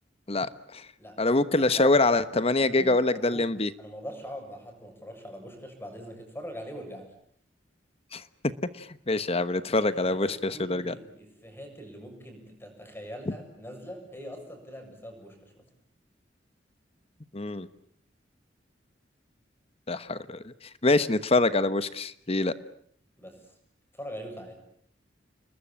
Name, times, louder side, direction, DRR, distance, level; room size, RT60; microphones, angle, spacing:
voice 1, 0.3-0.8 1.2-3.7 8.1-8.2 8.8-10.9 17.3-17.7 19.9-20.5 20.8-22.5, left 2 dB, 35° left, 14 dB, 1.1 m, -25 dB
voice 2, 1.5-2.2 2.6-3.5 3.8-7.1 9.7-15.6 23.2-23.5 23.9-24.5, equal, 15° left, 4 dB, 7.1 m, -43 dB
28.5 x 21.0 x 8.8 m, 0.65 s
head